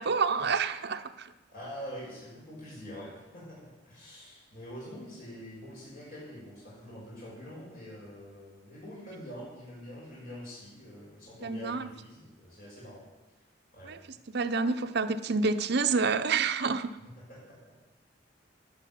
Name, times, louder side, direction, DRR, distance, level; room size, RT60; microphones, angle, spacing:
voice 1, 0.0-1.3 11.4-11.9 13.8-14.0 14.3-17.0, right 4 dB, 60° right, 8 dB, 0.7 m, -28 dB
voice 2, 1.5-13.1 13.7-13.9 17.3-17.6, equal, 50° left, -6 dB, 6.3 m, -45 dB
11.0 x 10.0 x 7.6 m, 1.1 s
head